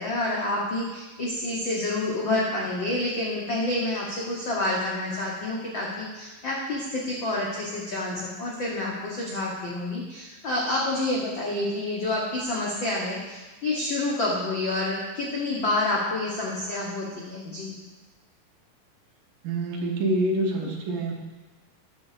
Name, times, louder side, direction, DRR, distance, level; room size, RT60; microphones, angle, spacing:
voice 1, 0.0-17.7, left 2 dB, 70° left, -4 dB, 1.1 m, -28 dB
voice 2, 19.4-21.1, right 1 dB, 70° right, 0 dB, 2.7 m, -26 dB
9.6 x 6.6 x 5.0 m, 1.2 s
omnidirectional pair, 4.1 m